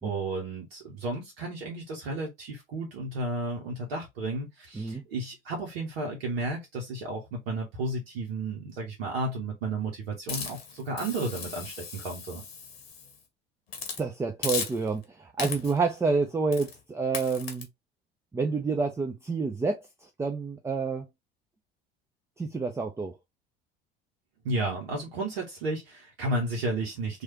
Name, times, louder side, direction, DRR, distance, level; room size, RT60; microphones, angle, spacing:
voice 1, 0.0-12.4 24.4-27.2, right 2 dB, 70° right, 1.0 m, -33 dB
Hiss, 10.3-13.2 13.7-14.0 14.4-15.0 15.4-15.9 16.5-16.8 17.1-17.6, left 5 dB, 80° left, 0.9 m, -36 dB
voice 2, 14.0-17.7 18.3-21.1 22.4-23.1, right 4 dB, 10° right, 0.4 m, -29 dB
3.1 x 2.4 x 2.9 m
figure-of-eight pair, 70°, 30 cm